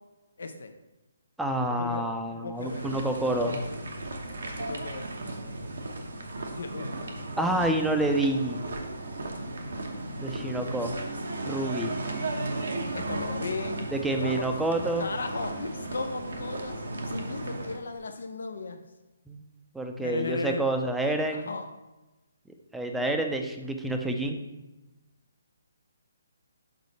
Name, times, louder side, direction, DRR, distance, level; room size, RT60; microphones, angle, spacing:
voice 1, 0.4-0.7 1.8-2.0 2.3-2.9 3.4-3.8 4.6-5.1 6.6-6.9 12.9-13.8 14.2-14.5 15.0-18.8 20.0-20.6 21.3-21.7, left 3 dB, 70° left, 6 dB, 0.6 m, -35 dB
voice 2, 1.4-3.6 7.4-8.7 10.2-11.0 11.5-12.0 13.9-15.1 19.3-19.4 19.7-21.5 22.7-24.4, right 1 dB, 5° right, 4 dB, 0.5 m, -28 dB
sound 1, 2.6-17.8, right 2 dB, 75° right, 1.0 m, -35 dB
6.5 x 4.2 x 4.1 m, 1.1 s
hypercardioid pair, 150°, 0 cm